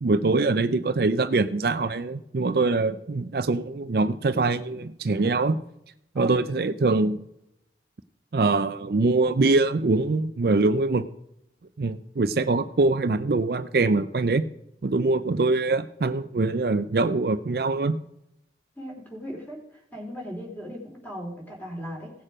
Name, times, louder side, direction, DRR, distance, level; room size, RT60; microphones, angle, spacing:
voice 1, 0.0-5.6 6.2-7.2 8.3-11.1 11.8-14.4 14.8-18.0, right 3 dB, 60° right, 11 dB, 0.5 m, -23 dB
voice 2, 18.8-22.1, equal, 10° left, -1 dB, 3.2 m, -38 dB
17.0 x 6.6 x 5.0 m, 0.81 s
head